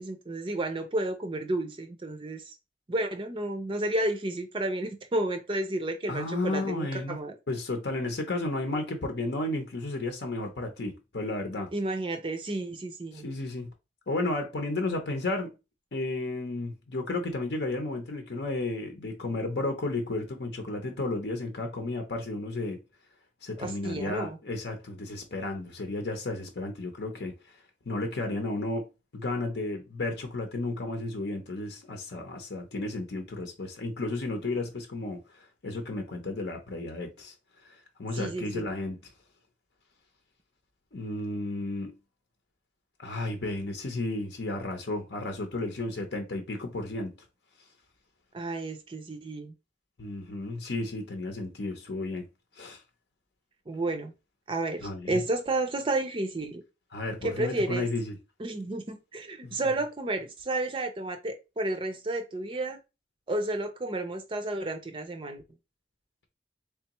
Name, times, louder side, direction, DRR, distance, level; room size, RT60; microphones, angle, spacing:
voice 1, 0.0-2.6 2.9-7.3 11.7-13.3 23.6-24.4 38.1-38.6 48.3-49.5 53.7-54.1 54.5-56.6 57.2-57.9 58.4-62.8 63.3-65.4, right 2 dB, 30° right, 0.5 m, -31 dB
voice 2, 6.1-7.2 7.5-11.7 13.1-13.7 14.1-15.5 15.9-22.8 23.4-27.4 27.9-28.9 29.1-35.2 35.6-37.3 38.0-39.0 40.9-41.9 43.0-47.1 50.0-52.3 52.6-52.8 54.8-55.2 56.9-58.2 59.4-59.6, left 2 dB, 70° left, 0.7 m, -33 dB
3.5 x 3.3 x 3.0 m
head